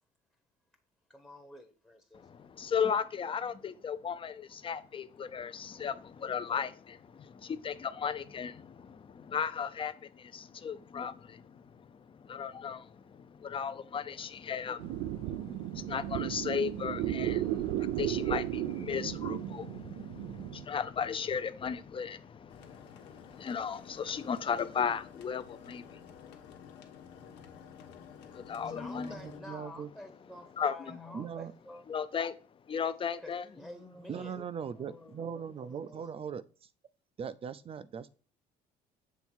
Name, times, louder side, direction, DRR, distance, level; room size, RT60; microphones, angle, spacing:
voice 1, 1.1-2.3 28.5-31.8 33.2-34.5 34.7-36.1, left 1 dB, 5° left, 0.9 m, -49 dB
voice 2, 2.1-27.7 28.0-29.1 30.6-30.9 31.9-32.3 32.7-33.4, left 7 dB, 30° left, 0.6 m, -36 dB
sound 1, 14.8-20.7, right 13 dB, 90° right, 0.5 m, -34 dB
sound 2, 22.5-29.4, left 8 dB, 85° left, 1.2 m, -52 dB
voice 3, 29.0-29.9 31.1-31.5 34.1-36.7 37.2-38.1, right 7 dB, 35° right, 0.5 m, -40 dB
7.3 x 3.5 x 4.4 m
cardioid pair, 110°, 17 cm